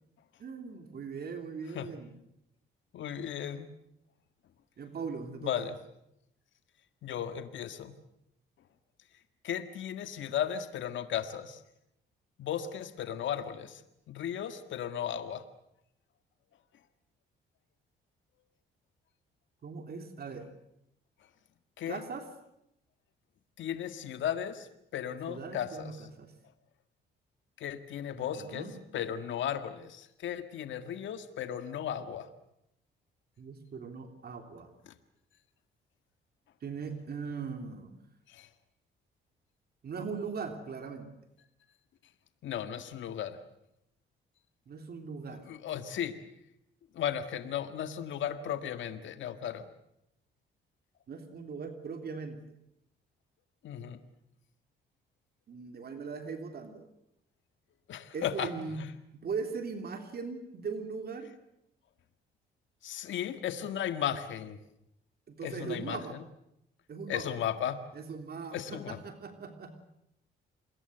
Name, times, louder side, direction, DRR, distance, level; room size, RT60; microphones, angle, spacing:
voice 1, 0.4-2.1 4.8-5.7 19.6-20.5 21.9-22.3 25.3-26.3 28.1-28.8 33.4-34.7 36.6-38.0 39.8-41.1 44.7-45.5 51.1-52.4 55.5-56.9 58.1-58.8 59.1-61.3 65.3-66.2 66.9-67.3 67.9-69.8, right 5 dB, 50° right, 6 dB, 3.2 m, -39 dB
voice 2, 2.9-3.7 5.4-5.8 7.0-7.9 9.4-11.6 12.4-13.8 14.1-15.4 21.8-22.0 23.6-24.7 24.9-25.9 27.6-28.7 28.9-32.3 38.3-38.5 42.4-43.4 45.5-46.1 46.9-49.7 53.6-54.0 57.9-58.5 58.8-58.9 62.8-64.6 65.4-66.2 67.1-67.8 68.5-69.0, left 9 dB, 75° left, 9 dB, 1.8 m, -35 dB
27.5 x 21.5 x 7.9 m, 0.80 s
cardioid pair, 90°, 20 cm